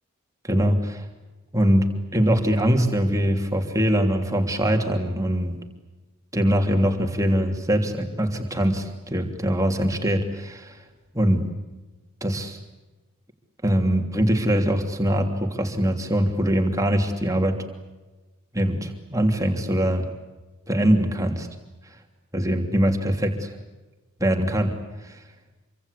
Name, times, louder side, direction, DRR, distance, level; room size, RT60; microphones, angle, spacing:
voice 1, 0.4-1.1 1.5-5.6 6.3-10.8 11.1-11.5 12.2-12.6 13.6-17.7 18.5-20.1 20.7-21.5 22.3-23.5 24.2-24.8 25.0-25.2, equal, 15° right, 4 dB, 3.1 m, -22 dB
27.0 x 25.0 x 8.5 m, 1.1 s
head